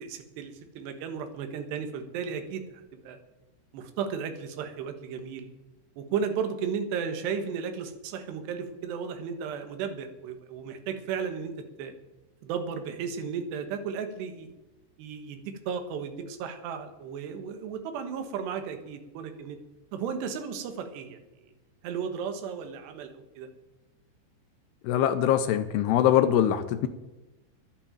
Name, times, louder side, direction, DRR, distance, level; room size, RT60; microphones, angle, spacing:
voice 1, 0.0-3.2 3.7-5.5 6.0-11.5 11.8-11.9 12.4-14.5 15.0-19.6 19.9-21.5 21.8-23.5, right 6 dB, 70° right, 7 dB, 3.2 m, -34 dB
voice 2, 24.8-26.9, left 10 dB, 85° left, 9 dB, 2.3 m, -23 dB
11.0 x 9.3 x 8.8 m, 1.0 s
omnidirectional pair, 5.7 m